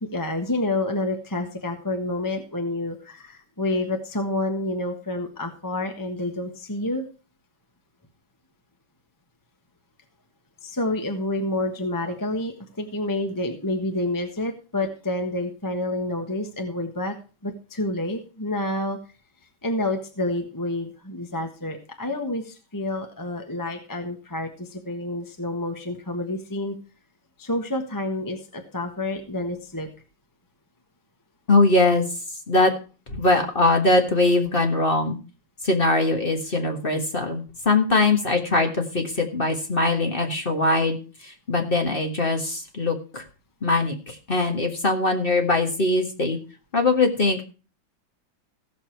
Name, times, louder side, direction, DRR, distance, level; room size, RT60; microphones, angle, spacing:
voice 1, 0.0-7.0 10.6-17.1 17.4-19.0 19.6-26.8 27.4-29.9, left 1 dB, 10° left, 4 dB, 1.1 m, -28 dB
voice 2, 31.5-32.0 32.3-32.7 33.1-35.2 35.6-43.2 43.6-46.4 46.7-47.4, left 2 dB, 30° left, 4 dB, 1.6 m, -22 dB
16.0 x 6.8 x 4.5 m, 0.34 s
omnidirectional pair, 2.1 m